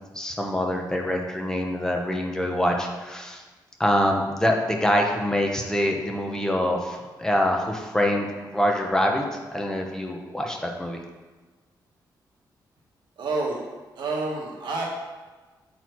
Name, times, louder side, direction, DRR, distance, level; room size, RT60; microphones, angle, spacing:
voice 1, 0.1-3.4 3.8-8.3 8.5-9.2 9.5-11.0, left 1 dB, 10° left, 1 dB, 1.0 m, -25 dB
voice 2, 13.2-13.6 13.9-14.8, right 3 dB, 70° right, -2 dB, 1.7 m, -28 dB
7.8 x 4.5 x 4.6 m, 1.3 s
cardioid pair, 110°, 8 cm